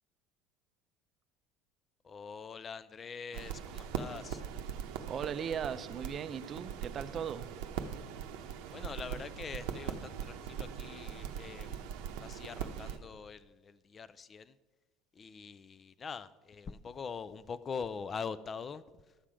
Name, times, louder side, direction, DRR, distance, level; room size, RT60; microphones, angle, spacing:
voice 1, 2.0-4.4 8.7-11.9 12.2-14.6 15.1-19.2, left 5 dB, 25° left, 16 dB, 0.4 m, -43 dB
sound 1, 3.3-13.0, right 8 dB, 80° right, 0.8 m, -41 dB
voice 2, 5.1-7.5, right 7 dB, 35° right, 13 dB, 0.5 m, -38 dB
11.5 x 7.4 x 4.9 m, 1.2 s
cardioid pair, 135°, 0 cm